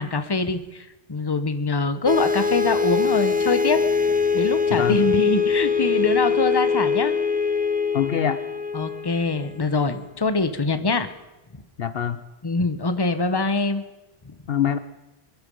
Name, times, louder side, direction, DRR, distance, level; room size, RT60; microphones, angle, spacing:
voice 1, 0.0-3.8 4.3-7.1 8.7-11.1 12.4-13.8 14.2-14.3, left 3 dB, 25° left, 10 dB, 1.0 m, -24 dB
sound 1, 2.1-9.8, left 5 dB, 10° right, 0.6 m, -23 dB
voice 2, 4.7-5.0 7.9-8.4 11.8-12.2 14.5-14.8, left 9 dB, 60° left, 13 dB, 0.9 m, -24 dB
22.0 x 12.0 x 5.5 m, 1.0 s
omnidirectional pair, 1.2 m